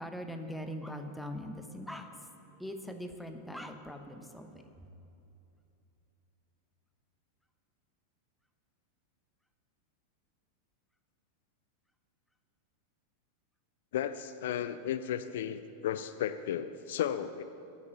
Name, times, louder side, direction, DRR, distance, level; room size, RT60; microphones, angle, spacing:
voice 1, 0.0-4.9, equal, ahead, 5 dB, 0.9 m, -42 dB
voice 2, 13.9-17.4, left 10 dB, 55° left, 11 dB, 0.3 m, -34 dB
8.2 x 7.5 x 8.6 m, 2.8 s
figure-of-eight pair, 90°, 0 cm